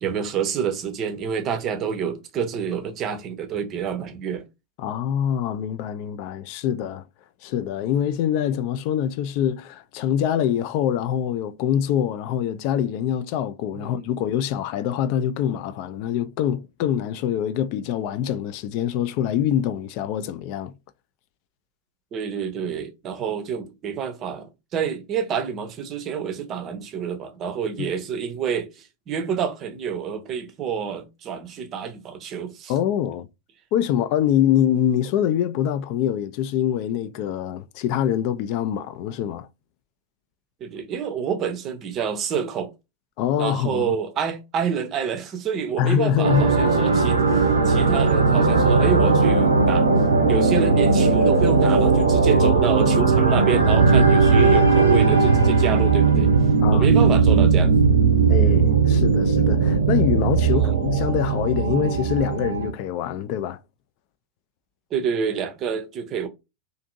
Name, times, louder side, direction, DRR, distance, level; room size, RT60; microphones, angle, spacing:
voice 1, 0.0-4.4 13.7-13.9 22.1-32.7 40.6-42.7 43.4-49.9 50.3-56.3 56.7-57.7 60.5-60.8 64.9-66.3, right 7 dB, 30° right, 0.6 m, -28 dB
voice 2, 4.8-7.0 7.4-20.7 27.8-27.9 32.7-33.3 33.7-39.5 43.2-43.9 45.8-46.5 54.4-54.5 56.6-56.9 58.3-63.6, left 10 dB, 45° left, 0.3 m, -24 dB
sound 1, 46.2-62.7, right 4 dB, 80° right, 0.6 m, -18 dB
2.6 x 2.6 x 2.5 m
figure-of-eight pair, 90°, 0 cm